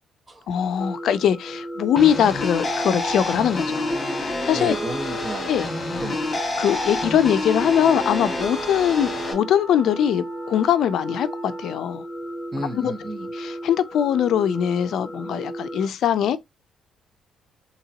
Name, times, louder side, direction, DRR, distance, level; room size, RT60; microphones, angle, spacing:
voice 1, 0.5-4.7 5.5-5.7 6.6-12.0 12.7-12.9 13.4-16.4, left 9 dB, 70° left, 0.4 m, -22 dB
sound 1, 0.8-15.9, right 1 dB, 5° right, 2.1 m, -35 dB
sound 2, 2.0-9.3, left 2 dB, 30° left, 1.8 m, -28 dB
voice 2, 4.5-5.5 6.0-6.4 12.5-13.3, right 1 dB, 30° right, 1.2 m, -32 dB
Wind instrument woodwind instrument, 6.3-11.8, right 5 dB, 75° right, 1.1 m, -42 dB
3.9 x 2.9 x 2.8 m
cardioid pair, 90°, 0 cm